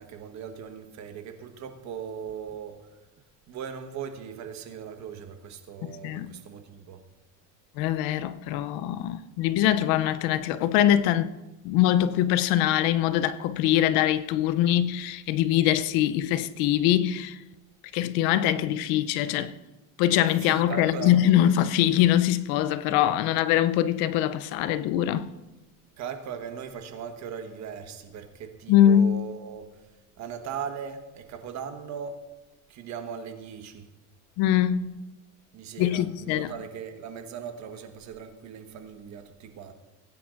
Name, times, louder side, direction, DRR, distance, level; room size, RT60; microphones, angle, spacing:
voice 1, 0.0-3.0 3.5-7.0 20.4-21.1 26.0-29.9 30.2-32.2 32.7-33.9 35.5-39.7, right 7 dB, 50° right, 1.3 m, -39 dB
voice 2, 5.8-6.3 7.8-11.3 11.6-17.4 17.9-19.5 20.0-25.3 28.7-29.2 34.4-35.0 35.8-36.5, left 11 dB, 75° left, 0.6 m, -23 dB
19.5 x 9.6 x 2.5 m
cardioid pair, 130°, 36 cm